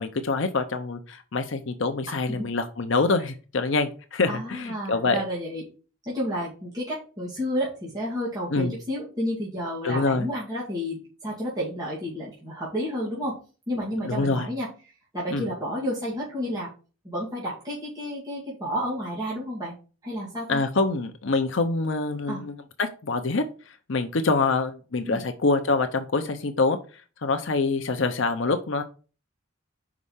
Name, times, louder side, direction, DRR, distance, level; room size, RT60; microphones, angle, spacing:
voice 1, 0.0-5.2 8.5-8.8 9.8-10.3 14.0-14.5 15.3-15.5 20.5-26.8 27.2-28.8, left 3 dB, 60° left, 7 dB, 0.7 m, -25 dB
voice 2, 4.3-5.6 6.1-13.4 13.7-14.7 15.1-16.7 17.0-19.7 20.0-20.6 22.3-22.5 25.1-25.3, equal, 20° right, -8 dB, 2.4 m, -31 dB
5.4 x 4.9 x 5.6 m, 0.36 s
head